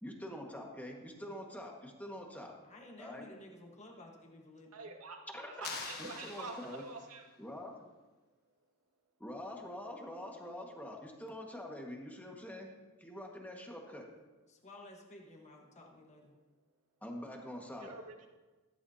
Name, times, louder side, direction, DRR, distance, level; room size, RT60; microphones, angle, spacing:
voice 1, 0.0-2.5 3.0-3.3 5.3-5.6 6.0-6.8 7.4-7.8 9.2-12.7 13.0-14.1 17.0-17.9, left 1 dB, 5° left, 0 dB, 1.6 m, -45 dB
voice 2, 2.6-4.9 14.5-16.3, left 1 dB, 30° left, 1 dB, 1.4 m, -54 dB
voice 3, 4.7-5.2 5.6-7.3 17.8-18.3, right 3 dB, 85° right, 1 dB, 2.0 m, -46 dB
sound 1, 5.6-7.2, left 5 dB, 50° left, 1.3 m, -45 dB
14.5 x 14.0 x 2.8 m, 1.2 s
head